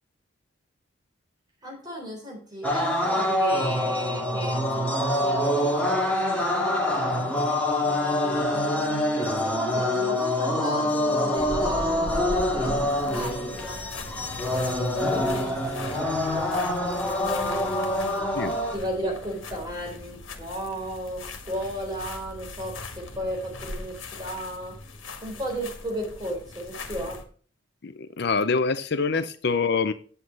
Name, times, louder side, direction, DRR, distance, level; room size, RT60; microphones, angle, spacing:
voice 1, 1.6-7.5 7.8-13.8 14.5-18.2 18.7-24.8 25.2-27.2, equal, 20° right, 4.0 m, -35 dB
sound 1, 2.6-18.8, left 1 dB, 5° left, 2.0 m, -25 dB
sound 2, 11.4-27.2, left 2 dB, 80° left, 1.6 m, -39 dB
voice 2, 27.8-29.9, left 4 dB, 60° left, 0.6 m, -25 dB
8.2 x 8.0 x 5.2 m
head